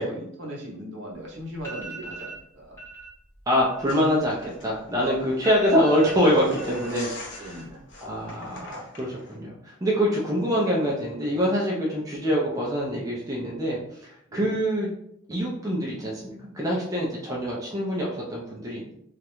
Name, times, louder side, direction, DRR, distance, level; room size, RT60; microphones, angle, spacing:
voice 1, 0.0-2.8 5.3-5.4 7.4-7.8 14.3-14.6, equal, 65° right, -2 dB, 0.7 m, -38 dB
sound 1, 1.1-1.2 1.6-2.4 2.8-3.1 3.4-4.9 5.1-5.2 5.4-6.9 7.2-7.8 8.1-8.6, right 3 dB, 15° left, 0.8 m, -41 dB
voice 2, 3.5-7.5 8.0-13.8 14.3-14.9 15.3-18.9, equal, 15° right, -4 dB, 0.4 m, -25 dB
sound 2, 3.8-9.4, left 1 dB, 60° left, 0.6 m, -43 dB
2.4 x 2.1 x 2.9 m, 0.75 s
head